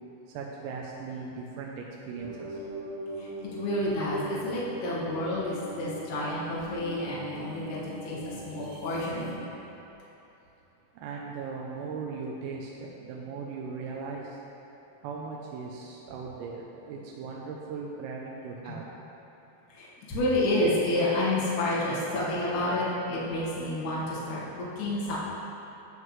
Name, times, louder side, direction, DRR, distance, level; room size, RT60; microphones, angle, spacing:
voice 1, 0.3-2.6 11.0-14.4 15.0-18.9, right 4 dB, 85° right, -2 dB, 3.3 m, -38 dB
sound 1, 2.2-9.3, equal, 55° right, 2.0 m, -40 dB
voice 2, 3.2-9.4 18.6-18.7 19.7-25.2, left 1 dB, 80° left, -8 dB, 1.7 m, -30 dB
11.0 x 7.9 x 3.1 m, 2.9 s
omnidirectional pair, 5.9 m